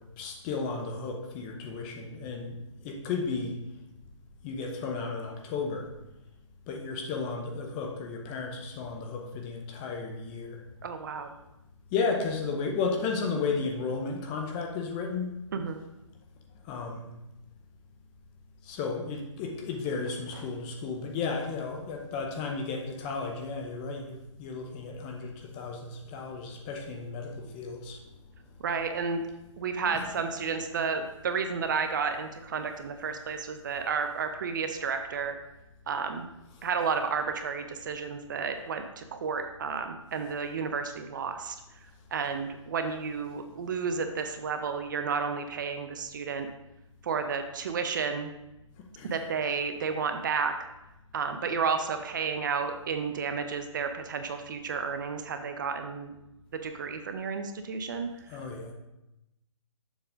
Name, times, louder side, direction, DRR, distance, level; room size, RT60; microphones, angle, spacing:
voice 1, 0.2-2.6 2.8-3.6 4.4-5.9 6.7-10.6 11.9-15.3 16.6-17.1 18.6-28.0 29.9-30.1 49.0-49.1 58.3-58.7, left 4 dB, 15° left, 2 dB, 0.5 m, -33 dB
voice 2, 10.8-11.4 15.5-15.8 28.6-29.2 29.6-35.4 35.9-36.3 36.6-41.6 42.1-46.5 47.0-48.3 49.0-50.5 51.1-56.1 56.5-58.4, right 5 dB, 40° right, 7 dB, 0.6 m, -32 dB
7.0 x 3.7 x 5.0 m, 0.91 s
hypercardioid pair, 155°, 17 cm